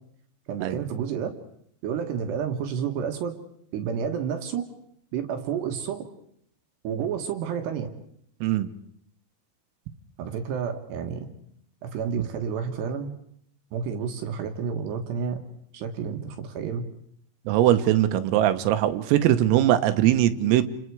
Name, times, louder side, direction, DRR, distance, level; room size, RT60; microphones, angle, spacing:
voice 1, 0.5-1.3 1.8-3.4 3.7-4.6 5.1-6.0 6.8-7.9 10.2-11.3 11.8-13.1 13.7-15.4 15.7-16.8, right 7 dB, 65° right, 5 dB, 3.2 m, -30 dB
voice 2, 8.4-8.7 17.5-20.6, right 12 dB, 85° right, 10 dB, 3.8 m, -21 dB
29.5 x 29.0 x 4.8 m, 0.70 s
omnidirectional pair, 5.8 m